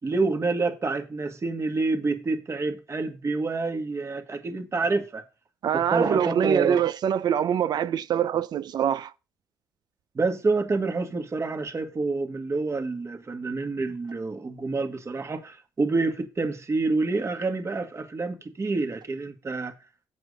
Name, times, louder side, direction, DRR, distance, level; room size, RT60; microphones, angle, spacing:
voice 1, 0.0-5.2 5.7-6.8 10.2-19.7, right 3 dB, 35° right, 1.9 m, -28 dB
voice 2, 5.6-9.1, right 9 dB, 65° right, 0.5 m, -24 dB
7.6 x 5.4 x 6.6 m
supercardioid pair, 65°, 8 cm